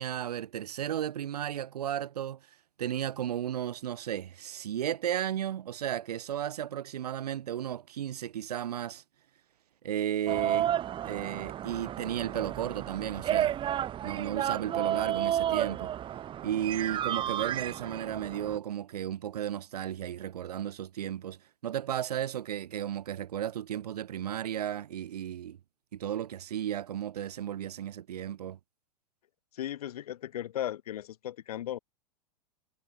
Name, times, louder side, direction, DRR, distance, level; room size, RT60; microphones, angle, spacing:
voice 1, 0.0-2.4 2.8-9.0 9.8-10.7 11.0-13.6 14.0-15.9 16.4-25.6 25.9-28.6, right 10 dB, 80° right, 0.7 m, -34 dB
sound 1, 10.3-18.6, right 11 dB, 25° right, 0.8 m, -32 dB
voice 2, 29.5-31.8, left 12 dB, 70° left, 1.7 m, -36 dB
hypercardioid pair, 110°, 20 cm